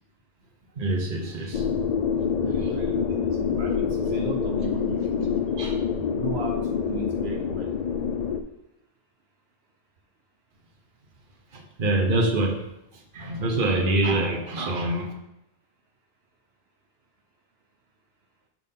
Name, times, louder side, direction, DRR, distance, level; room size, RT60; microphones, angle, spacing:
voice 1, 0.8-1.6 5.6-5.8 11.5-12.6 13.1-15.1, right 2 dB, 55° right, 1 dB, 1.2 m, -25 dB
sound 1, 1.5-8.4, left 6 dB, 55° left, 0.5 m, -26 dB
voice 2, 2.4-5.4 6.1-7.7, right 4 dB, 75° right, 0 dB, 1.1 m, -36 dB
6.9 x 6.3 x 3.7 m, 0.87 s
omnidirectional pair, 1.1 m